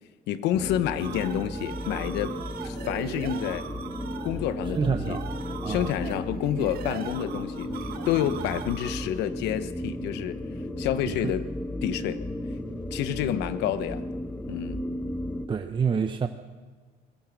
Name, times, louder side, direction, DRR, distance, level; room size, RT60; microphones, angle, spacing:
voice 1, 0.3-2.4 2.6-3.7 4.2-5.2 5.7-7.7 8.1-10.4 10.8-11.5 11.8-12.2 12.9-14.0 14.5-14.8, left 11 dB, 90° left, 12 dB, 1.1 m, -29 dB
sound 1, 0.5-15.5, left 1 dB, 10° left, 1.2 m, -34 dB
sound 2, 0.7-9.2, right 8 dB, 65° right, 1.9 m, -41 dB
voice 2, 4.7-5.3 5.6-5.9 11.1-11.3 15.5-16.3, right 6 dB, 30° right, 6 dB, 0.9 m, -27 dB
21.5 x 21.0 x 6.1 m, 1.5 s
cardioid pair, 110°, 17 cm